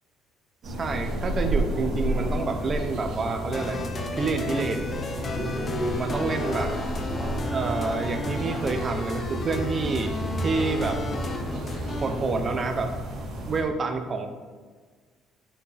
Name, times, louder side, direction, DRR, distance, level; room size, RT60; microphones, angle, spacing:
voice 1, 0.6-3.8 4.1-4.9 6.0-6.7 7.5-10.1 10.4-11.0 12.0-12.9 13.5-14.3, right 3 dB, 30° right, 5 dB, 0.7 m, -28 dB
sound 1, 0.6-13.6, right 1 dB, 55° right, 2.1 m, -32 dB
sound 2, 1.7-12.3, equal, ahead, 1.6 m, -37 dB
sound 3, 3.5-12.1, left 3 dB, 30° left, 0.6 m, -33 dB
9.7 x 4.5 x 3.4 m, 1.5 s
cardioid pair, 145°, 0 cm